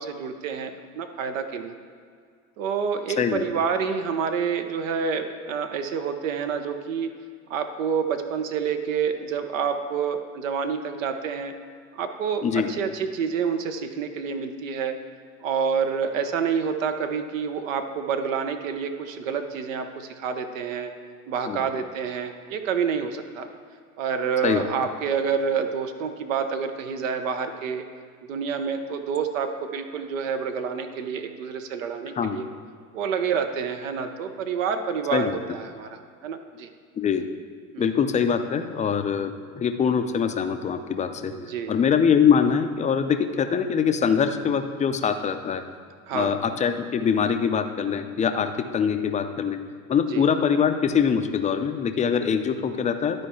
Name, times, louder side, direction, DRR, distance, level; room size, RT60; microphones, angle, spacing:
voice 1, 0.0-1.7 2.6-7.1 7.5-11.5 11.9-15.0 15.4-20.9 21.3-23.5 24.0-27.8 28.2-32.5 32.9-36.7 37.7-37.9 41.3-41.7 46.1-46.4 50.1-50.3, right 6 dB, 70° right, 7 dB, 0.8 m, -28 dB
voice 2, 12.4-12.7 21.5-21.6 24.4-24.6 32.2-32.4 35.1-35.4 37.0-37.2 37.8-41.3 41.7-45.6 46.1-49.6 49.9-53.3, left 7 dB, 20° left, 8 dB, 0.5 m, -23 dB
11.5 x 4.5 x 4.3 m, 2.1 s
hypercardioid pair, 85°, 41 cm